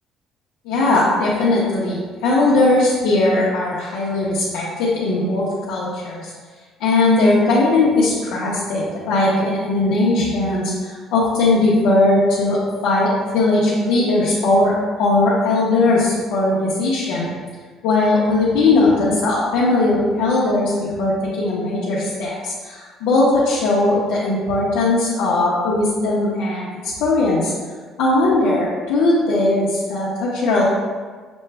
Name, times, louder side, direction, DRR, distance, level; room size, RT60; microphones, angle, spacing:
voice 1, 0.6-6.3 6.8-17.3 17.8-26.7 27.0-27.5 28.0-30.6, left 2 dB, 90° left, -8 dB, 0.8 m, -18 dB
6.1 x 2.2 x 3.3 m, 1.5 s
cardioid pair, 155°, 0 cm